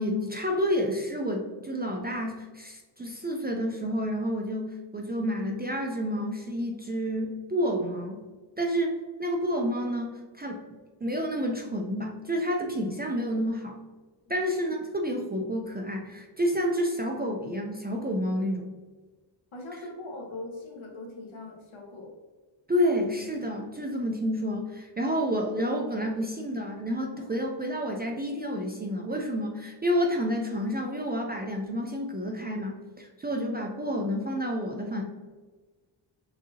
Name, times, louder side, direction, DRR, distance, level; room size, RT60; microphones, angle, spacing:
voice 1, 0.0-8.2 8.6-10.6 11.0-13.8 14.3-18.7 22.7-35.0, equal, 20° right, 1 dB, 0.3 m, -29 dB
voice 2, 19.5-22.1, left 2 dB, 75° left, -1 dB, 1.2 m, -41 dB
6.0 x 2.7 x 2.7 m, 1.3 s
wide cardioid pair, 130°, 49 cm